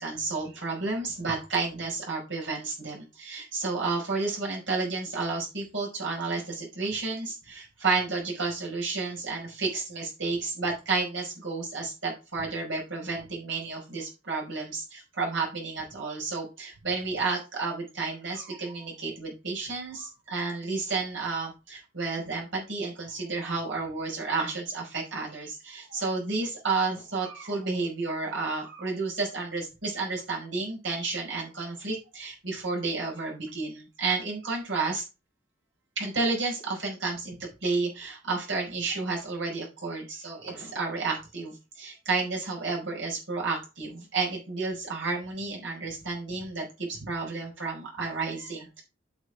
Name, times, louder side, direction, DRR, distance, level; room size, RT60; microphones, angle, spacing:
voice 1, 0.0-35.0 36.0-48.8, right 3 dB, 80° right, -3 dB, 5.2 m, -31 dB
8.2 x 6.6 x 4.9 m, 0.29 s
head